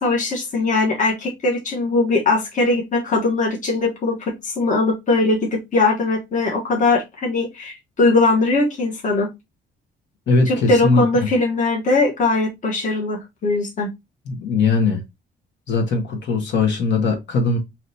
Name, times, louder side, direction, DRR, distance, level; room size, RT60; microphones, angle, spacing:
voice 1, 0.0-9.3 10.5-13.9, left 3 dB, 40° left, 1.3 m, -20 dB
voice 2, 10.3-11.0 14.2-15.0 15.7-17.6, left 3 dB, 65° left, 1.4 m, -20 dB
4.9 x 3.0 x 2.7 m
cardioid pair, 135°, 20 cm